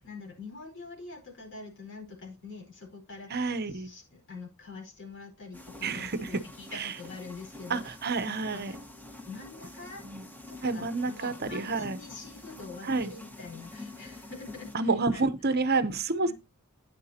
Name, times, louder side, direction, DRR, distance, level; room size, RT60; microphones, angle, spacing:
voice 1, 0.0-7.9 8.3-8.8 9.2-10.1 10.5-15.2 15.5-15.6 16.2-16.3, left 3 dB, 55° left, 4.7 m, -45 dB
voice 2, 3.3-3.9 5.8-6.4 6.7-6.9 7.7-8.8 10.0-10.2 10.6-12.0 12.8-13.1 14.7-16.3, right 3 dB, 45° right, 0.9 m, -29 dB
sound 1, 5.5-14.8, left 2 dB, 10° left, 1.5 m, -47 dB
12.0 x 9.4 x 2.8 m
head